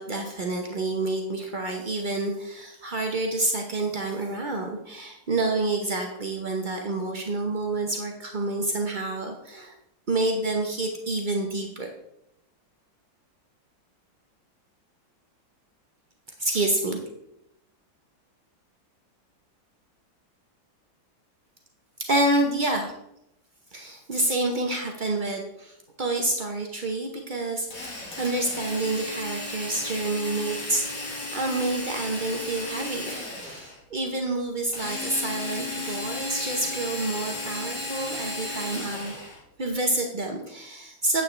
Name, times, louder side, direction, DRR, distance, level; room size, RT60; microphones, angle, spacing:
voice 1, 0.0-9.7 10.1-11.9 16.4-17.0 22.0-22.9 23.7-30.9 31.3-39.1 39.6-41.2, right 2 dB, 65° right, 2 dB, 0.4 m, -28 dB
Drill, 27.7-33.8 34.7-39.4, left 2 dB, 45° left, 2.6 m, -34 dB
9.3 x 8.4 x 3.2 m, 0.82 s
omnidirectional pair, 2.2 m